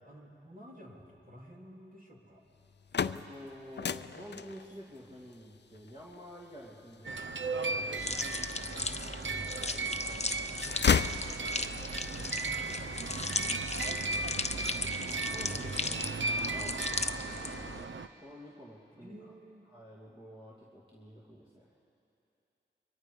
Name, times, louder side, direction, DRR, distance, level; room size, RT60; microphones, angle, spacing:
voice 1, 0.0-2.5 2.8-3.5 8.7-9.8 10.5-13.4 18.9-19.7, equal, 45° right, -3 dB, 3.8 m, -55 dB
sound 1, 2.6-8.6 9.1-10.0 10.3-11.9, left 7 dB, 65° left, 0.5 m, -33 dB
voice 2, 3.0-8.4 10.0-10.3 15.0-16.1 16.5-19.3 19.7-21.7, equal, 30° right, -5 dB, 2.6 m, -50 dB
sound 2, 7.0-18.1, right 3 dB, 75° right, 0.8 m, -36 dB
sound 3, 8.0-17.8, left 3 dB, 35° left, 0.9 m, -37 dB
29.5 x 23.5 x 5.4 m, 2.9 s
wide cardioid pair, 55°, 19 cm